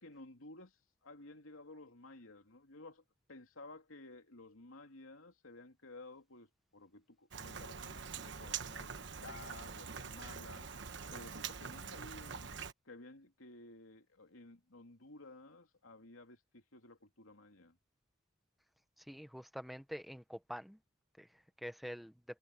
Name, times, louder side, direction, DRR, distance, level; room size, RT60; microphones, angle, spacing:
voice 1, 0.0-3.0 3.3-10.7 11.1-12.5 12.8-17.8, left 2 dB, 85° left, 3.2 m, -54 dB
Rain, 7.3-12.7, right 6 dB, 60° right, 1.2 m, -45 dB
voice 2, 19.0-20.8 21.2-22.1, equal, ahead, 0.8 m, -46 dB
head